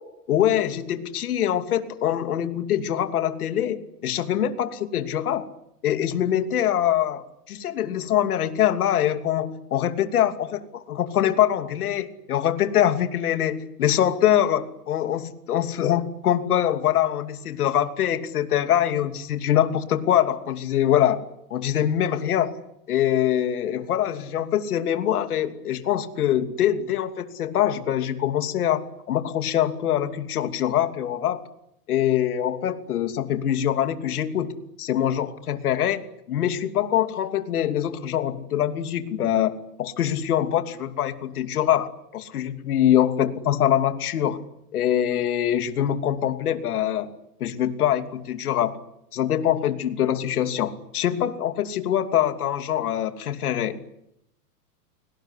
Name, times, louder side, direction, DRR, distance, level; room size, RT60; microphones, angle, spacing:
voice 1, 0.3-5.5 5.8-10.6 10.9-21.2 21.5-22.5 22.9-31.4 31.9-34.5 34.8-39.5 39.8-44.4 44.7-47.1 47.4-48.8 49.1-53.8, left 10 dB, 65° left, 8 dB, 3.0 m, -24 dB
29.5 x 19.5 x 10.0 m, 0.79 s
supercardioid pair, 175°, 48 cm